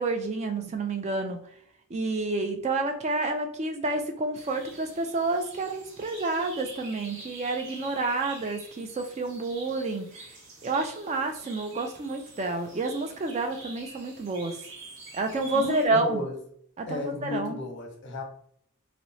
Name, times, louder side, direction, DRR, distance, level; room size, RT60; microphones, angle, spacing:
voice 1, 0.0-1.4 1.9-10.3 10.6-14.6 15.1-16.2 16.8-17.6, right 3 dB, 30° right, 0.3 m, -29 dB
sound 1, 4.3-15.9, right 2 dB, 55° right, 0.7 m, -47 dB
voice 2, 15.5-16.4 16.9-18.2, left 2 dB, 50° left, 0.7 m, -33 dB
2.9 x 2.1 x 2.7 m
head